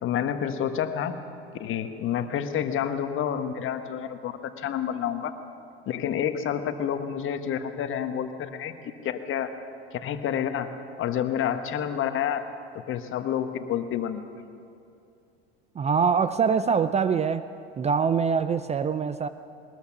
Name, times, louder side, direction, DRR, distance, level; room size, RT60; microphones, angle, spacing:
voice 1, 0.0-1.2 1.5-5.3 5.9-8.7 9.0-9.5 9.9-10.7 11.0-12.4 12.9-14.2, left 9 dB, 40° left, 9 dB, 1.5 m, -29 dB
voice 2, 15.8-17.4 17.8-19.3, right 6 dB, 20° right, 13 dB, 0.6 m, -24 dB
21.0 x 20.0 x 6.1 m, 2.5 s
hypercardioid pair, 80°, 32 cm